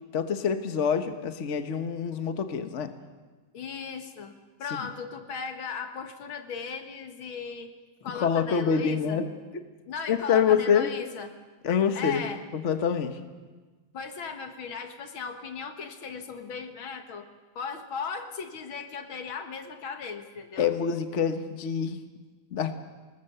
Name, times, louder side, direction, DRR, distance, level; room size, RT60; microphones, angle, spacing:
voice 1, 0.1-2.9 8.1-9.3 10.1-10.9 11.6-12.3 12.5-13.2 20.6-22.0 22.5-22.7, left 7 dB, 40° left, 8 dB, 1.4 m, -26 dB
voice 2, 3.5-7.8 8.0-9.2 9.9-11.4 11.9-12.4 13.9-17.3 17.6-20.7, left 5 dB, 85° left, 6 dB, 2.4 m, -37 dB
28.5 x 19.0 x 6.8 m, 1.3 s
omnidirectional pair, 2.2 m